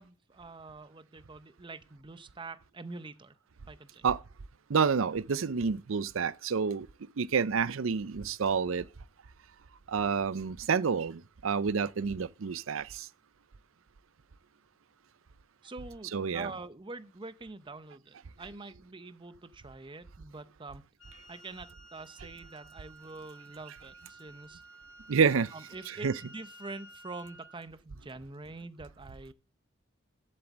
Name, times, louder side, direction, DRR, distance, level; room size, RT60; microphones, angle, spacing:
voice 1, 0.0-3.4 3.7-4.1 15.6-20.8 21.3-24.6 25.5-29.3, right 3 dB, 25° right, 0.7 m, -45 dB
voice 2, 4.7-6.9 7.2-8.8 9.9-13.1 16.1-16.5 25.1-25.5 26.0-26.1, right 6 dB, 80° right, 0.5 m, -28 dB
Wind instrument woodwind instrument, 21.0-27.6, right 1 dB, 65° left, 2.0 m, -54 dB
7.8 x 7.5 x 7.2 m
head